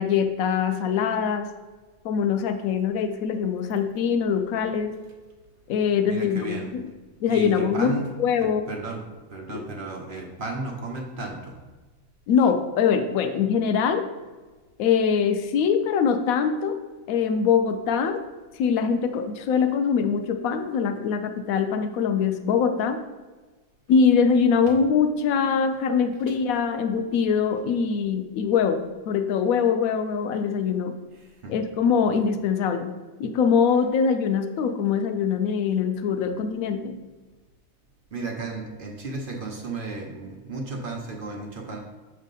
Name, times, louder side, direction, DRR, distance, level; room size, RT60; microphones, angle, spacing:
voice 1, 0.0-1.5 2.0-4.9 5.7-6.9 7.2-7.9 8.2-8.7 9.5-9.6 12.3-14.0 14.8-16.8 17.1-18.2 18.6-23.0 23.9-31.0 31.5-32.9 33.2-37.0, left 6 dB, 90° left, 8 dB, 1.0 m, -23 dB
voice 2, 6.0-6.7 7.3-8.1 8.4-9.0 9.3-11.6 24.7-24.8 26.3-26.4 31.1-31.6 38.1-41.8, right 3 dB, 50° right, 1 dB, 0.8 m, -34 dB
6.2 x 3.3 x 5.3 m, 1.3 s
omnidirectional pair, 1.4 m